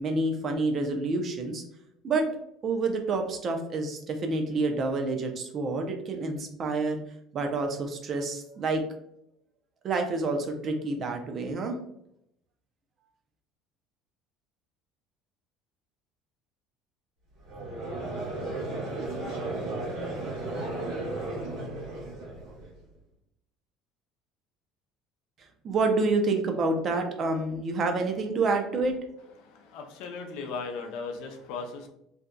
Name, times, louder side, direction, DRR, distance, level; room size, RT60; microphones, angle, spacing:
voice 1, 0.0-1.6 2.0-2.3 2.6-7.0 7.3-8.8 9.8-11.8 25.6-28.9, right 3 dB, 45° right, 4 dB, 0.5 m, -28 dB
Conversation / Crowd, 17.4-22.7, right 2 dB, 70° right, 1.3 m, -34 dB
voice 2, 29.4-31.9, left 4 dB, 75° left, 4 dB, 0.4 m, -37 dB
2.6 x 2.4 x 2.2 m, 0.77 s
supercardioid pair, 85°, 0 cm